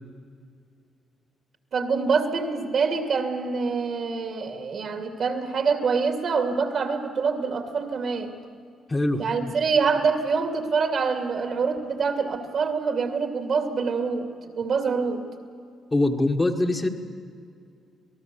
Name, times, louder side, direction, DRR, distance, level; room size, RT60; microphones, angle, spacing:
voice 1, 1.7-8.3 9.2-15.2, right 5 dB, 55° right, 4 dB, 2.6 m, -25 dB
voice 2, 8.9-9.5 15.9-16.9, left 2 dB, 20° left, 3 dB, 1.6 m, -23 dB
27.0 x 19.0 x 7.0 m, 2.3 s
cardioid pair, 90°, 0 cm